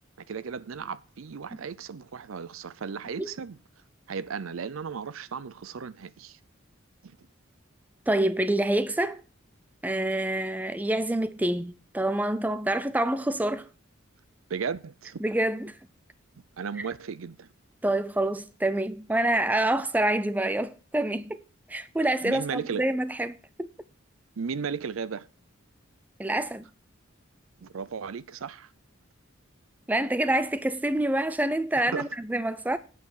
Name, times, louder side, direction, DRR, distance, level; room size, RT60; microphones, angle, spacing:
voice 1, 0.3-3.6 4.1-6.4 7.0-7.2 14.5-15.2 16.6-17.5 22.2-22.9 24.4-25.3 27.6-28.7 31.9-32.1, right 6 dB, 80° right, 0.5 m, -35 dB
voice 2, 8.1-9.2 9.8-13.7 15.2-15.8 17.8-21.4 21.7-23.7 26.2-26.7 29.9-32.8, right 1 dB, 10° right, 0.4 m, -27 dB
8.6 x 6.0 x 6.4 m
head